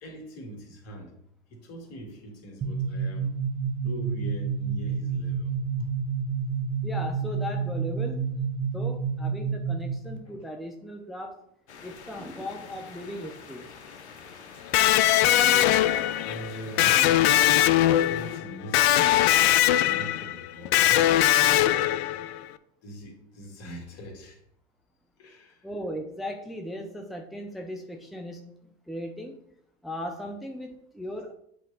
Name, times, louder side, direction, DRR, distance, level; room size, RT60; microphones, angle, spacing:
voice 1, 0.0-1.1 1.5-3.3 3.8-5.9 10.3-10.4 15.2-17.5 17.8-19.3 19.7-21.0 21.4-22.1 22.8-24.4 25.2-25.7, equal, 50° left, 1 dB, 2.2 m, -42 dB
sound 1, 2.6-10.2, right 5 dB, 35° right, 1.3 m, -29 dB
voice 2, 6.8-8.3 8.7-11.4 11.8-13.7 25.6-29.4 29.8-31.3, left 1 dB, ahead, 2 dB, 0.7 m, -37 dB
sound 2, 11.7-18.4, left 6 dB, 90° left, 0.8 m, -46 dB
Electric guitar, 14.7-22.4, left 13 dB, 70° left, 0.5 m, -21 dB
7.9 x 3.3 x 4.0 m, 0.71 s
hypercardioid pair, 80°, 32 cm